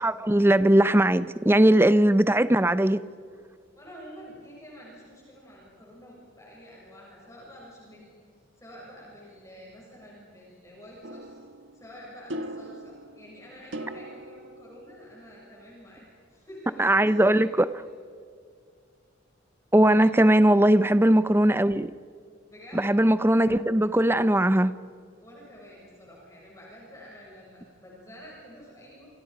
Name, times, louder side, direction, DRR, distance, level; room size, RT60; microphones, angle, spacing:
voice 1, 0.0-3.0 16.8-17.7 19.7-21.9 22.7-24.7, right 1 dB, 10° right, 0.6 m, -20 dB
voice 2, 3.8-8.1 8.6-11.4 11.7-17.6 19.9-20.7 22.4-22.8 25.2-29.1, equal, 15° left, 7.1 m, -48 dB
sound 1, 11.0-15.5, right 1 dB, 75° right, 1.6 m, -41 dB
30.0 x 27.5 x 5.2 m
head